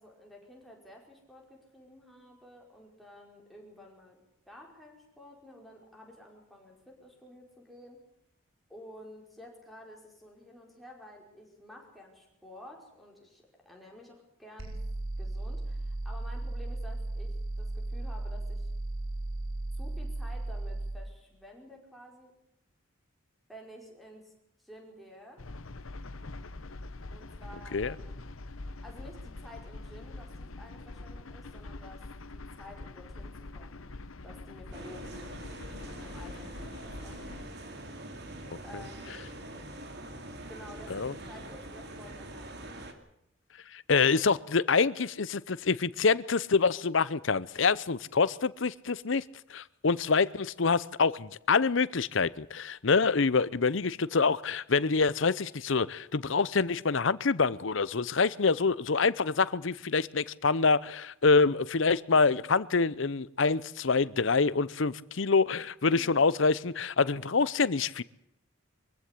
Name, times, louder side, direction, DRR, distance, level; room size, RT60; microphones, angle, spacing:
voice 1, 0.0-4.2 4.5-8.0 8.7-14.8 15.2-18.7 19.7-22.3 23.5-24.3 24.6-25.4 27.1-28.2 28.8-32.0 32.3-33.9 34.2-35.4 35.9-37.3 38.6-39.2 40.5-42.7 65.9-66.3, left 1 dB, ahead, -1 dB, 5.2 m, -51 dB
sound 1, 14.6-21.0, right 2 dB, 80° right, 4.9 m, -35 dB
sound 2, 25.4-37.5, left 2 dB, 85° left, 1.0 m, -44 dB
sound 3, 34.7-42.9, right 1 dB, 55° right, 2.7 m, -44 dB
voice 2, 43.7-49.2 49.5-68.0, left 4 dB, 65° left, 18 dB, 0.7 m, -26 dB
23.5 x 15.5 x 8.4 m, 0.80 s
head